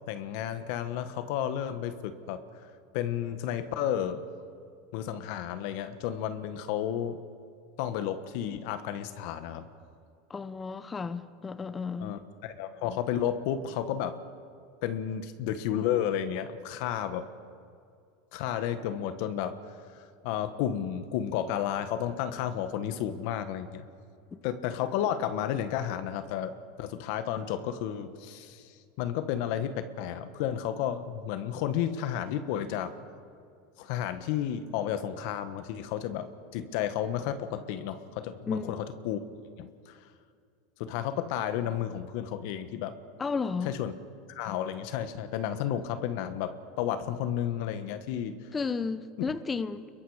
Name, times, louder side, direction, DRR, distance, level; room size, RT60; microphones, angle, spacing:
voice 1, 0.1-2.4 2.9-4.2 4.9-7.2 7.8-9.7 12.0-14.2 14.8-17.3 18.3-19.6 19.9-23.8 24.4-26.5 26.8-28.7 29.0-32.9 33.8-36.3 36.5-39.2 39.6-40.0 40.8-42.9 43.6-43.9 44.3-48.4, left 10 dB, 65° left, 1.4 m, -32 dB
voice 2, 10.3-12.2 24.3-24.4 38.5-38.8 43.2-43.7 48.5-49.9, left 4 dB, 20° left, 0.9 m, -33 dB
28.5 x 22.5 x 5.0 m
supercardioid pair, 120°, 0 cm